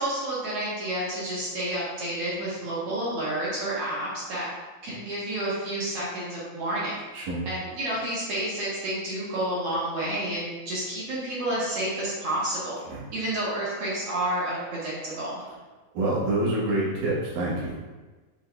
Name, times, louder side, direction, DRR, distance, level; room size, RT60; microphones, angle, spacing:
voice 1, 0.0-4.5 4.8-7.0 7.5-12.8 13.1-15.4, right 1 dB, 60° right, -7 dB, 1.6 m, -30 dB
voice 2, 7.1-7.4 12.9-13.0 15.9-17.8, right 2 dB, 80° right, -6 dB, 2.9 m, -27 dB
6.7 x 3.4 x 2.2 m, 1.2 s
omnidirectional pair, 3.8 m